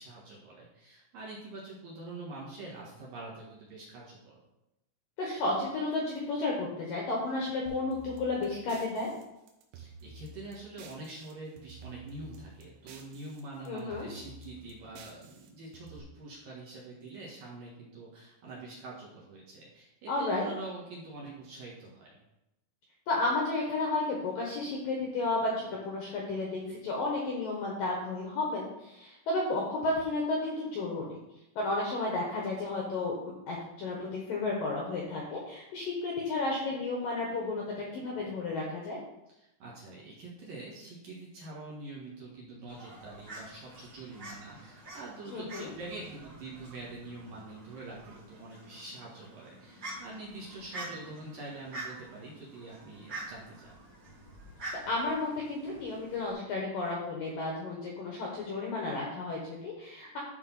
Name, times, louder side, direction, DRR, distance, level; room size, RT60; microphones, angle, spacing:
voice 1, 0.0-4.4 9.7-22.2 39.3-53.8, right 2 dB, 60° right, -5 dB, 2.6 m, -45 dB
voice 2, 5.2-9.1 13.7-14.1 20.1-20.5 23.1-31.1 31.6-39.0 45.3-45.7 54.9-60.2, left 2 dB, 70° left, -2 dB, 2.2 m, -32 dB
sound 1, 7.7-11.3 11.6-13.4 13.7-16.0, right 3 dB, 75° right, 3.5 m, -51 dB
Fowl, 42.7-56.3, right 2 dB, 35° right, 1.8 m, -47 dB
12.0 x 4.1 x 5.4 m, 0.91 s
omnidirectional pair, 5.7 m